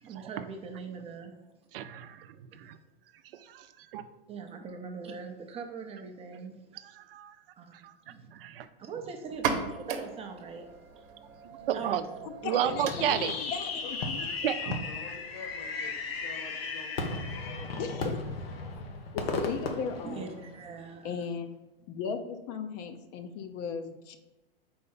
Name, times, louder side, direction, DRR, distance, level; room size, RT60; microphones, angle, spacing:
voice 1, 0.0-1.3 4.3-6.9 7.6-7.7 8.1-8.3 8.8-10.6 11.7-12.0 12.5-12.8 20.0-21.2, right 5 dB, 20° right, 4 dB, 0.5 m, -41 dB
voice 2, 1.7-2.8 3.3-3.7 3.9-4.0 7.0-7.4 7.8-7.9 8.3-8.7 11.7-12.0 12.4-13.3 14.4-14.8, right 10 dB, 70° right, 10 dB, 0.6 m, -32 dB
sound 1, 9.3-16.7, right 6 dB, 55° right, 1.0 m, -40 dB
voice 3, 11.6-12.0 13.8-13.9 14.6-17.2, left 3 dB, 70° left, 2 dB, 1.8 m, -47 dB
voice 4, 12.2-14.3 17.8-18.2 19.1-20.5 21.0-21.6 21.9-24.2, left 6 dB, 45° left, 8 dB, 0.7 m, -37 dB
Fireworks, 12.7-20.8, left 4 dB, 85° left, 0.9 m, -35 dB
4.3 x 4.2 x 5.5 m, 1.0 s
hypercardioid pair, 130°, 29 cm